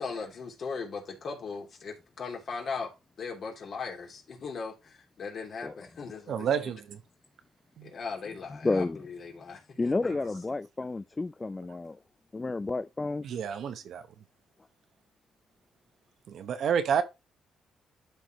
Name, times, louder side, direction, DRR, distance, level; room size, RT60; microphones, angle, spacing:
voice 1, 0.0-2.9 3.2-6.7 7.8-10.2, left 5 dB, 55° left, 3.1 m, -38 dB
voice 2, 6.3-7.0 7.8-7.9 13.2-14.1 16.3-17.0, right 7 dB, 65° right, 1.0 m, -29 dB
voice 3, 8.5-9.0 9.8-12.0 12.3-13.2, left 3 dB, 20° left, 0.4 m, -31 dB
12.0 x 4.7 x 3.0 m
cardioid pair, 90°, 0 cm